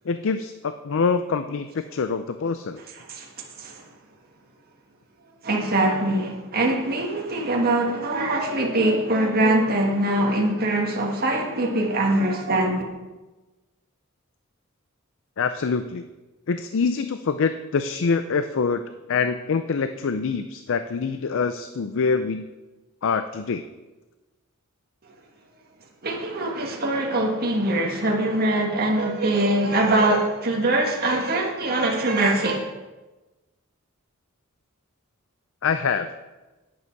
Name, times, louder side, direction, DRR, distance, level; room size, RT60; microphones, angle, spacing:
voice 1, 0.1-2.8 15.4-16.0 16.5-18.8 19.1-22.5 23.0-23.6 35.6-36.1, left 5 dB, 65° left, 0.5 m, -25 dB
voice 2, 2.9-3.9 5.4-12.8 26.0-32.7, right 1 dB, 45° right, 1.6 m, -23 dB
11.0 x 9.6 x 4.6 m
head